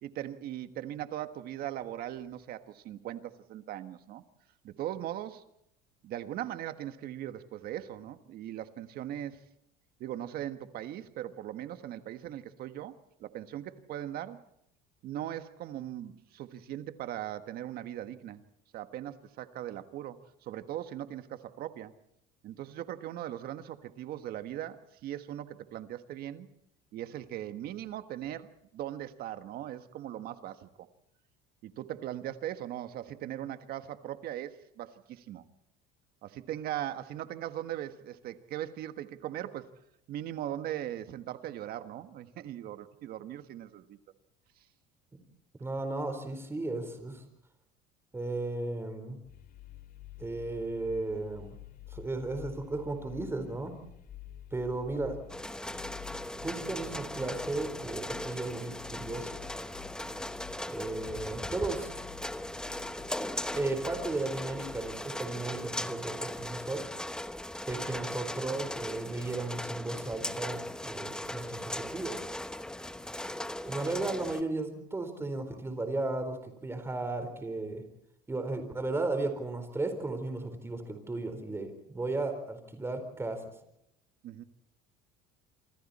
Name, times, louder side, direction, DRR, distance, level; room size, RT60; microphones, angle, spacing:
voice 1, 0.0-4.2 4.6-5.4 6.0-9.4 10.0-14.4 15.0-18.4 18.7-21.9 22.4-26.5 26.9-30.9 31.6-35.4 36.2-39.7 40.1-44.0 84.2-84.4, right 12 dB, 55° right, 10 dB, 1.6 m, -39 dB
voice 2, 45.6-47.2 48.1-49.2 50.2-51.6 51.9-53.8 54.5-55.2 56.4-59.4 60.7-61.9 63.5-66.9 67.6-72.2 73.6-77.8 78.3-83.5, right 2 dB, 15° right, 8 dB, 4.3 m, -35 dB
sound 1, 49.2-64.9, left 12 dB, 50° left, 2.9 m, -50 dB
sound 2, 55.3-74.4, left 1 dB, 5° left, 0.9 m, -38 dB
27.5 x 25.0 x 4.3 m, 0.76 s
cardioid pair, 130°, 19 cm